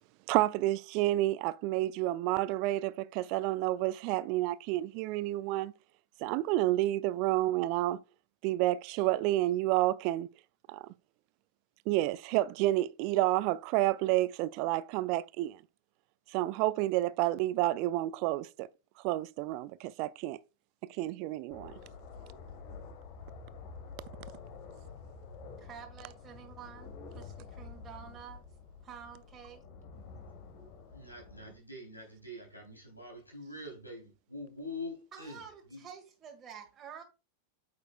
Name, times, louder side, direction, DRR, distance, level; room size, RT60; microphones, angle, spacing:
voice 1, 0.3-5.7 6.2-8.0 8.4-10.3 10.7-10.9 11.9-15.6 16.3-18.7 19.0-20.4 21.0-21.7, right 16 dB, 45° right, 0.4 m, -30 dB
sound 1, 21.5-31.6, left 5 dB, 50° left, 1.6 m, -49 dB
voice 2, 25.6-28.4 28.8-29.6 35.1-37.0, right 7 dB, 20° right, 1.7 m, -49 dB
voice 3, 30.9-35.9, left 2 dB, 85° left, 3.7 m, -45 dB
9.1 x 6.5 x 2.4 m
figure-of-eight pair, 90°, 0 cm